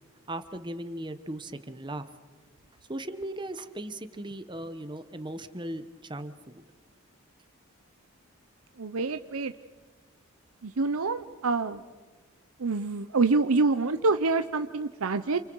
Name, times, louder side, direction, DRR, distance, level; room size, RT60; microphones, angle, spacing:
voice 1, 0.3-2.1 2.9-6.6, right 1 dB, 20° right, 10 dB, 1.1 m, -37 dB
voice 2, 8.8-9.5 10.6-11.8 12.6-15.4, right 3 dB, 80° right, 9 dB, 0.8 m, -26 dB
30.0 x 29.0 x 4.7 m, 1.4 s
head